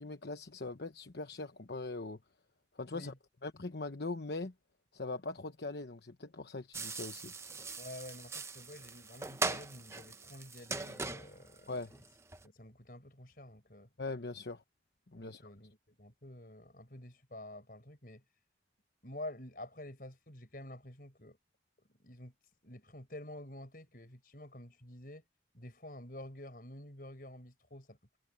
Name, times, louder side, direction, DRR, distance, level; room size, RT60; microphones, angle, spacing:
voice 1, 0.0-2.2 2.8-3.1 3.4-4.5 4.9-7.3 11.7-11.9 14.0-14.6 15.1-15.5, left 3 dB, 70° left, 1.1 m, -41 dB
sound 1, 6.7-12.5, right 3 dB, 15° right, 0.7 m, -41 dB
voice 2, 7.8-11.8 12.4-13.9 15.2-18.2 19.0-21.4 21.9-22.3 22.6-25.3 25.5-28.0, left 1 dB, 55° left, 5.2 m, -49 dB
head